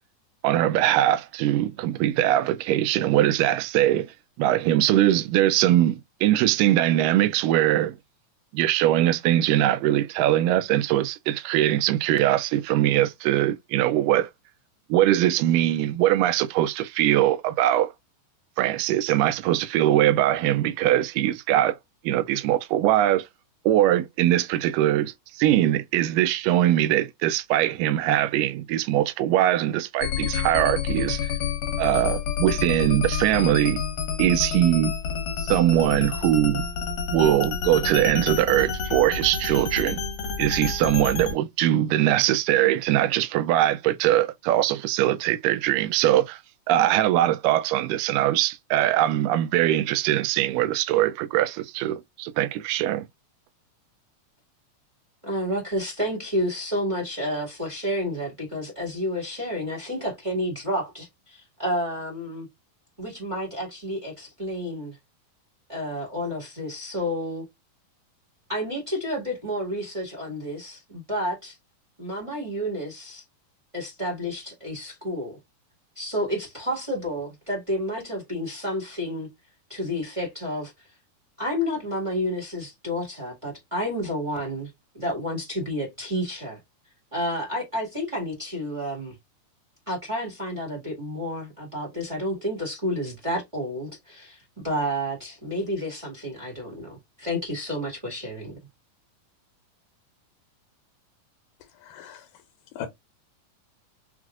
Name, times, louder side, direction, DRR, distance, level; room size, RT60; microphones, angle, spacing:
voice 1, 0.4-4.1 4.4-8.0 8.5-14.3 14.9-17.9 18.6-21.8 22.0-23.3 23.7-31.3 31.8-33.8 34.2-34.9 35.4-36.7 37.1-40.0 40.4-46.4 46.7-53.1, right 13 dB, 85° right, 2.1 m, -22 dB
sound 1, 30.0-41.3, left 6 dB, 65° left, 2.4 m, -29 dB
voice 2, 55.2-62.5 63.0-65.0 65.7-67.4 68.5-71.6 72.0-73.2 73.7-75.4 75.9-79.3 79.7-80.7 81.4-86.6 87.1-89.1 89.9-98.6, equal, 25° right, 0.6 m, -30 dB
voice 3, 101.8-102.3 102.7-102.9, left 9 dB, 85° left, 2.3 m, -38 dB
6.0 x 2.4 x 2.3 m
omnidirectional pair, 3.9 m